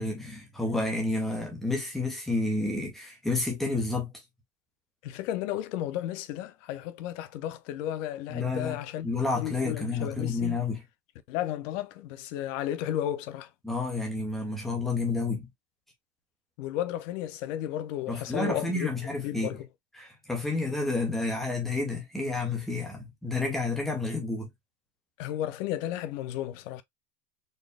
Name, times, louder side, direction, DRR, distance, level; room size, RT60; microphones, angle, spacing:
voice 1, 0.0-4.1 8.3-8.8 9.0-10.8 13.6-15.5 18.1-19.5 20.0-24.5, left 3 dB, ahead, 0.3 m, -30 dB
voice 2, 5.0-9.1 9.3-10.6 11.3-13.5 16.6-18.9 19.2-19.7 25.2-26.8, left 12 dB, 50° left, 0.7 m, -33 dB
4.3 x 2.2 x 3.3 m
supercardioid pair, 140°, 50 cm